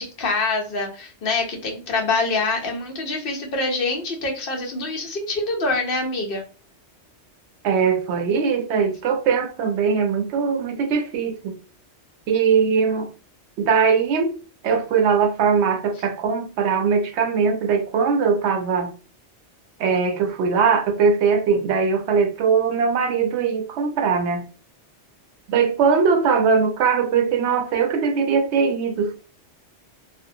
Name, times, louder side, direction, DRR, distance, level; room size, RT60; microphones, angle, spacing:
voice 1, 0.0-6.4, left 3 dB, 55° left, 0.9 m, -25 dB
voice 2, 7.6-11.6 12.3-13.1 13.6-14.4 14.6-18.9 19.8-24.4 25.5-29.2, right 5 dB, 75° right, 0.8 m, -20 dB
2.6 x 2.1 x 2.5 m
omnidirectional pair, 1.2 m